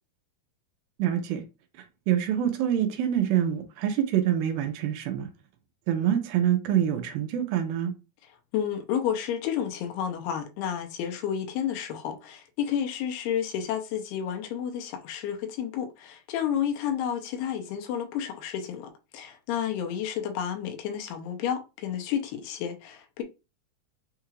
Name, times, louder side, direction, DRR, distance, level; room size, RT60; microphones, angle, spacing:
voice 1, 1.0-1.4 2.1-5.3 5.9-7.9, right 10 dB, 80° right, 2.3 m, -26 dB
voice 2, 8.5-23.2, left 9 dB, 85° left, 2.7 m, -31 dB
6.5 x 2.4 x 3.1 m
omnidirectional pair, 4.5 m